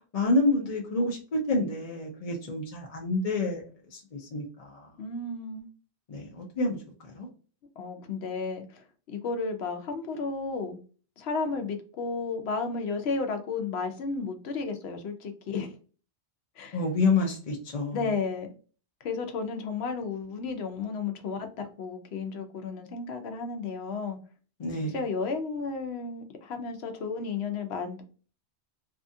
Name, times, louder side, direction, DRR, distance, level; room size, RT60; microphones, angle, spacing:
voice 1, 0.1-3.6 3.9-4.9 6.1-6.8 7.1-7.3 16.7-18.1 24.6-24.9, left 2 dB, 50° left, 0 dB, 0.5 m, -28 dB
voice 2, 5.0-5.7 7.8-10.8 11.2-15.7 16.6-16.8 17.9-18.5 19.0-24.2 24.8-28.0, left 4 dB, 75° left, 6 dB, 0.8 m, -33 dB
2.7 x 2.3 x 2.5 m, 0.38 s
omnidirectional pair, 1.1 m